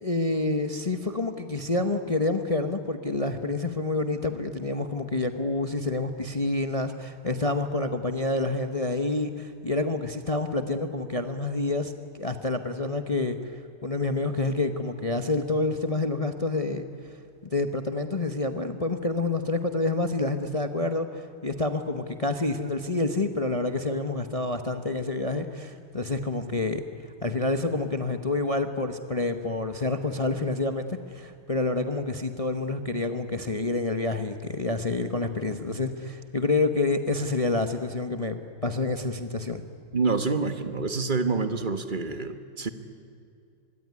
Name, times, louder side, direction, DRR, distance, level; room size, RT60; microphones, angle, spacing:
voice 1, 0.0-17.1 17.4-26.8 27.2-39.6, left 2 dB, 35° left, 8 dB, 0.5 m, -28 dB
voice 2, 39.9-42.7, right 4 dB, 30° right, 9 dB, 1.2 m, -27 dB
25.5 x 22.5 x 9.6 m, 2.5 s
omnidirectional pair, 2.4 m